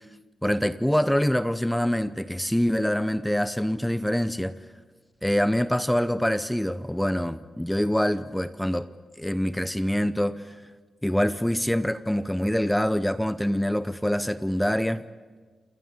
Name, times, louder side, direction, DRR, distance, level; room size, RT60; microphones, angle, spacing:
voice 1, 0.4-4.5 5.2-8.9 9.2-10.6 11.0-15.0, equal, 5° left, 12 dB, 0.6 m, -25 dB
29.0 x 28.0 x 5.1 m, 1.4 s
wide cardioid pair, 125°, 0 cm